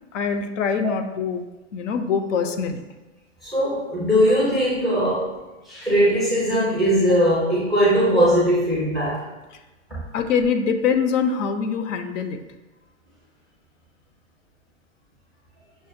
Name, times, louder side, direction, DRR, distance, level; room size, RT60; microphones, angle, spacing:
voice 1, 0.1-1.5 1.7-2.8 10.1-12.4, left 6 dB, 75° left, 8 dB, 0.5 m, -23 dB
voice 2, 3.4-5.3 5.6-9.2 9.9-10.0, equal, ahead, -7 dB, 0.4 m, -20 dB
5.9 x 2.1 x 2.5 m, 1.1 s
hypercardioid pair, 150°, 37 cm